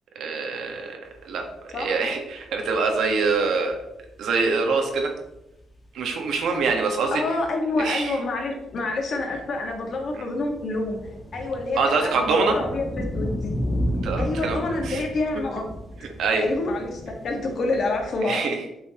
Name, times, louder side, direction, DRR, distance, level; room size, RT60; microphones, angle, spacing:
voice 1, 0.1-1.0 1.2-1.4 1.8-3.8 4.2-5.1 5.9-7.2 7.8-8.2 11.8-12.6 14.0-14.6 14.8-15.0 16.2-16.4 18.2-18.6, right 4 dB, 75° right, 3 dB, 1.5 m, -24 dB
sound 1, 1.1-1.2 1.4-1.9 2.3-4.3 5.0-5.1 5.2-5.3 5.6-5.8 6.4-7.1 7.4-18.1, equal, 20° left, 1.6 m, -33 dB
voice 2, 7.1-11.0 11.3-13.6 14.2-15.7 16.4-18.5, left 2 dB, 55° left, 2 dB, 1.7 m, -27 dB
8.5 x 5.4 x 3.0 m, 0.88 s
cardioid pair, 115°, 0 cm